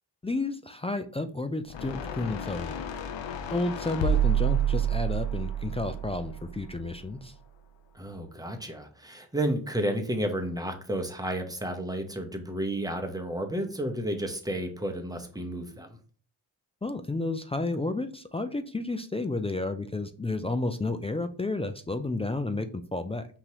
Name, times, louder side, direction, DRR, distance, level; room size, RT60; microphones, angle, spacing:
voice 1, 0.2-2.9 3.5-7.3 16.8-23.3, left 2 dB, 15° left, 7 dB, 0.3 m, -31 dB
sound 1, 1.7-6.9, right 6 dB, 80° left, 0.6 m, -29 dB
voice 2, 7.9-16.0, right 1 dB, 10° right, 4 dB, 0.8 m, -32 dB
5.4 x 2.9 x 2.8 m, 0.43 s
cardioid pair, 60°, 44 cm